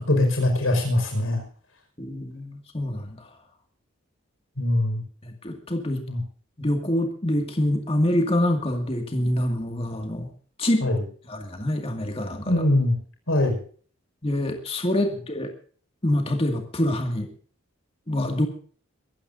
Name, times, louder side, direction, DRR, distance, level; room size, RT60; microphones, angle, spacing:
voice 1, 0.0-1.4 4.6-5.0 6.1-6.2 10.8-11.0 12.5-13.0 13.3-13.6, left 1 dB, 80° left, 3 dB, 5.4 m, -22 dB
voice 2, 2.0-3.3 5.2-6.0 6.6-10.3 10.6-10.9 11.3-12.5 14.2-15.5 16.0-17.3 18.1-18.5, left 1 dB, 25° left, 4 dB, 2.2 m, -26 dB
23.5 x 14.5 x 2.7 m, 0.43 s
head